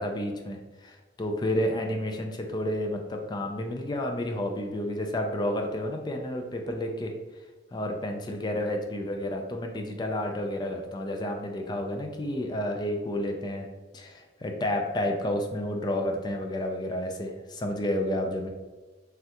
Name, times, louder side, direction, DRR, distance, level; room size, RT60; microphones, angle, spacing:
voice 1, 0.0-7.1 7.7-13.7 13.9-18.5, left 1 dB, 25° left, 3 dB, 0.3 m, -30 dB
3.3 x 2.3 x 2.8 m, 1.2 s
head